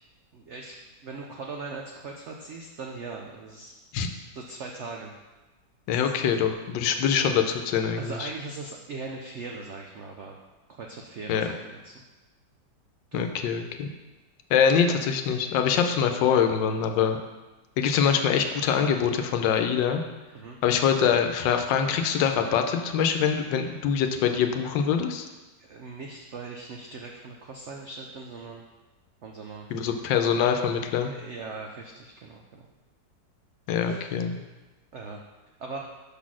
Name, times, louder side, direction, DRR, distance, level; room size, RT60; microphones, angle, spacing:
voice 1, 0.3-3.8 4.3-5.1 5.9-6.3 7.9-10.4 10.8-12.0 13.1-13.3 20.3-20.6 25.6-28.6 29.2-29.7 31.0-32.7 33.8-34.2 34.9-35.2 35.6-35.8, right 3 dB, 90° right, 1 dB, 0.6 m, -40 dB
voice 2, 5.9-8.3 11.3-11.5 13.1-13.9 14.5-17.2 17.8-20.0 20.6-25.3 29.7-31.1 33.7-34.4, left 7 dB, 85° left, 6 dB, 1.3 m, -24 dB
5.8 x 4.1 x 6.0 m, 1.2 s
omnidirectional pair, 2.0 m